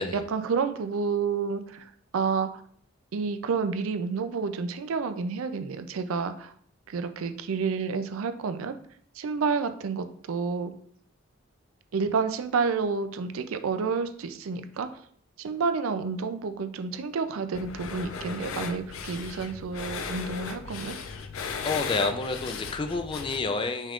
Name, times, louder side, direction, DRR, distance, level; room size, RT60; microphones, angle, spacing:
voice 1, 0.0-1.8 2.1-2.5 3.1-6.5 6.9-8.8 9.2-10.7 11.9-14.9 15.4-21.0, right 5 dB, 90° right, 9 dB, 0.4 m, -29 dB
sound 1, 17.5-23.4, left 5 dB, 85° left, 0.4 m, -36 dB
voice 2, 21.6-23.9, left 3 dB, 25° left, 7 dB, 0.4 m, -29 dB
5.4 x 2.4 x 3.6 m, 0.62 s
head